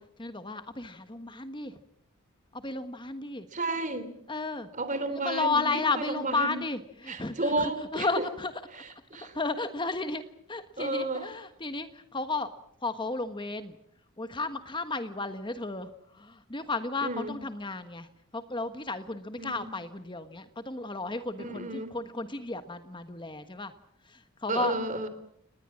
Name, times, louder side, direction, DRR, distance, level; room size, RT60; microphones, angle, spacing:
voice 1, 0.2-1.8 2.5-3.5 4.3-4.7 5.1-8.6 9.2-12.5 12.8-13.8 14.2-23.7 24.0-24.7, left 3 dB, 20° left, 9 dB, 1.3 m, -33 dB
voice 2, 3.5-4.1 4.8-6.6 7.1-8.1 9.1-9.3 10.8-11.3 17.0-17.3 19.4-19.7 21.4-21.9 24.5-25.1, right 2 dB, 35° right, 11 dB, 3.4 m, -32 dB
29.5 x 20.5 x 7.5 m, 0.70 s
head